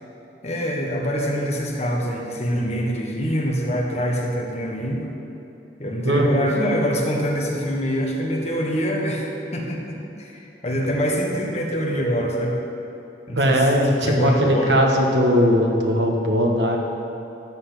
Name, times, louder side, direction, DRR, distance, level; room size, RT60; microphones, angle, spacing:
voice 1, 0.4-5.1 5.8-12.6 13.3-14.8, equal, 40° left, -1 dB, 1.4 m, -25 dB
voice 2, 6.0-6.5 13.3-16.8, equal, 85° right, 1 dB, 1.3 m, -19 dB
12.5 x 4.3 x 8.3 m, 2.9 s
head